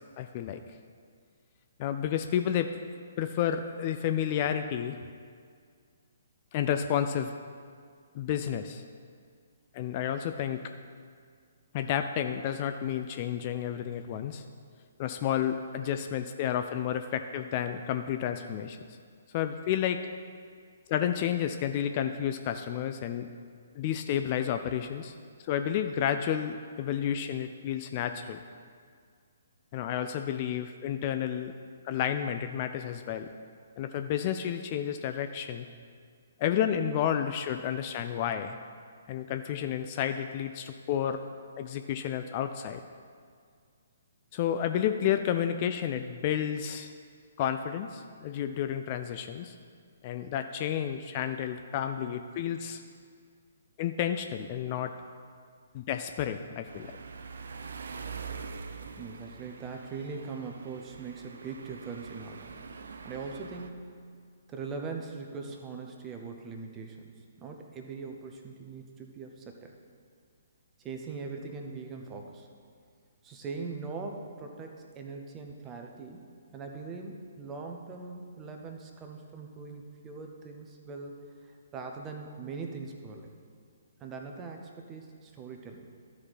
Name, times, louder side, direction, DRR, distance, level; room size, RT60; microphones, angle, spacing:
voice 1, 0.2-0.6 1.8-2.8 3.2-5.0 6.5-7.3 8.1-8.8 9.7-10.6 11.7-14.4 15.0-18.8 19.3-20.0 20.9-23.3 23.7-28.4 29.7-31.5 31.8-33.3 33.8-35.7 36.4-38.6 39.1-41.2 41.6-42.8 44.3-46.9 47.4-49.5 50.0-52.8 53.8-54.9 55.7-56.9, left 9 dB, 35° left, 8 dB, 0.4 m, -31 dB
sound 1, 56.7-63.7, right 5 dB, 60° right, 0.5 m, -44 dB
voice 2, 59.0-62.7 63.0-64.1 64.5-67.1 67.4-69.7 70.8-72.5 73.2-76.2 76.5-83.3 84.0-85.9, right 4 dB, 20° right, 2 dB, 0.9 m, -41 dB
13.0 x 4.8 x 4.2 m, 2.1 s
figure-of-eight pair, 130°, 0 cm